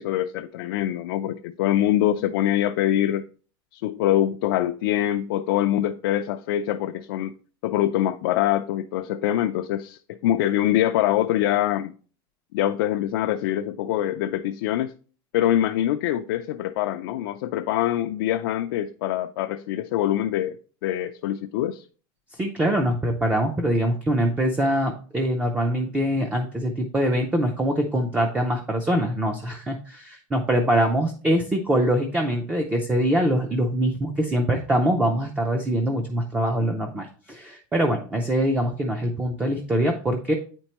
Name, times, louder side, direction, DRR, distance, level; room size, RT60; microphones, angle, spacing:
voice 1, 0.0-3.2 3.7-7.3 7.6-11.9 12.5-14.9 15.3-20.6 20.8-21.8, left 12 dB, 70° left, 0.4 m, -24 dB
voice 2, 22.3-40.3, right 1 dB, 10° right, 0.5 m, -23 dB
8.9 x 4.4 x 2.9 m
supercardioid pair, 175°, 12 cm